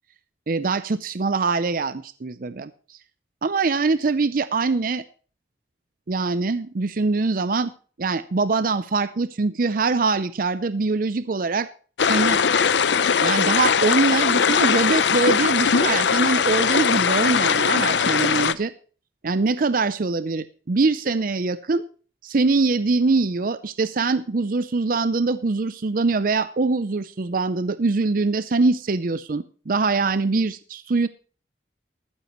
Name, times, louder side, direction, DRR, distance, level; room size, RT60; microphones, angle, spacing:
voice 1, 0.5-3.0 3.4-5.0 6.1-7.7 8.0-11.7 12.0-12.4 13.2-18.7 19.2-21.8 22.2-31.1, right 3 dB, 50° right, 14 dB, 0.5 m, -23 dB
sound 1, 12.0-18.5, left 6 dB, 90° left, 0.7 m, -20 dB
14.5 x 13.0 x 3.1 m, 0.40 s
head